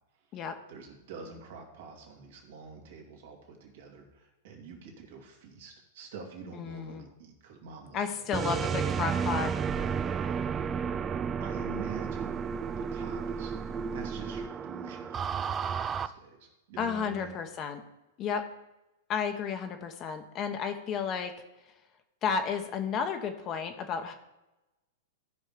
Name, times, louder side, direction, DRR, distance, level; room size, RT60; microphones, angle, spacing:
voice 1, 0.7-8.2 9.7-9.9 10.4-10.7 11.4-12.4 12.8-13.5 13.9-17.4, right 4 dB, 65° right, 2 dB, 2.4 m, -46 dB
voice 2, 6.5-7.0 7.9-9.6 16.8-17.8 18.2-18.5 19.1-21.3 22.2-24.1, left 6 dB, 35° left, 6 dB, 1.0 m, -32 dB
sound 1, 8.3-16.1, right 6 dB, 25° right, 0.4 m, -32 dB
13.0 x 5.5 x 5.0 m, 0.99 s
hypercardioid pair, 115°, 0 cm